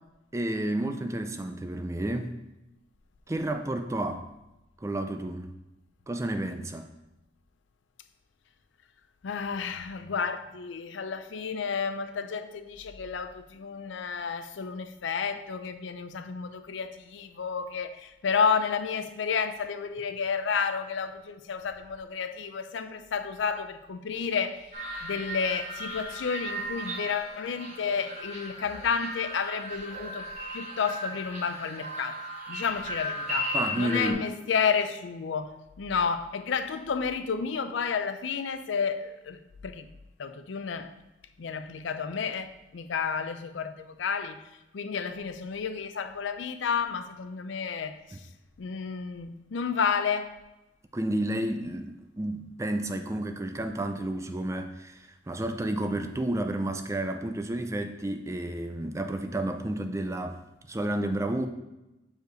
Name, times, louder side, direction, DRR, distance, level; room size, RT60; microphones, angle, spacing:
voice 1, 0.3-2.4 3.3-4.2 4.8-5.6 6.1-6.9 33.5-34.3 48.1-48.2 50.9-60.4 60.7-61.5, right 1 dB, 15° right, 0.4 m, -31 dB
voice 2, 9.2-24.8 25.0-30.3 30.5-32.2 32.5-39.9 40.2-40.9 41.4-44.4 44.7-48.2 48.6-50.4, left 6 dB, 80° left, 0.5 m, -31 dB
sound 1, 24.7-34.1, equal, 40° right, 1.7 m, -36 dB
6.5 x 5.0 x 3.9 m
head